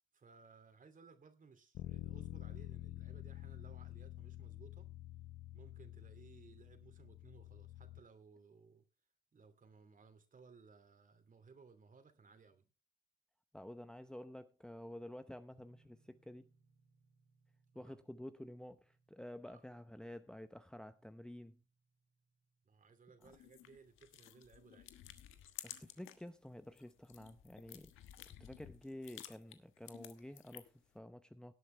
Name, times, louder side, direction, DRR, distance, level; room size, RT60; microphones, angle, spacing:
voice 1, 0.1-4.9 5.5-8.8 9.3-12.7 17.7-18.0 19.4-19.6 22.6-24.9, right 5 dB, 40° right, 2.7 m, -61 dB
Bass guitar, 1.7-8.0, left 15 dB, 70° left, 0.9 m, -49 dB
voice 2, 13.5-16.5 17.7-21.6 23.2-23.3 25.6-27.9 28.4-31.5, left 1 dB, 5° left, 0.8 m, -51 dB
sound 1, 15.5-23.1, right 4 dB, 75° right, 6.4 m, -75 dB
sound 2, 23.2-26.3 26.6-30.9, left 12 dB, 90° left, 1.3 m, -54 dB
18.0 x 8.4 x 3.3 m
cardioid pair, 90°, 20 cm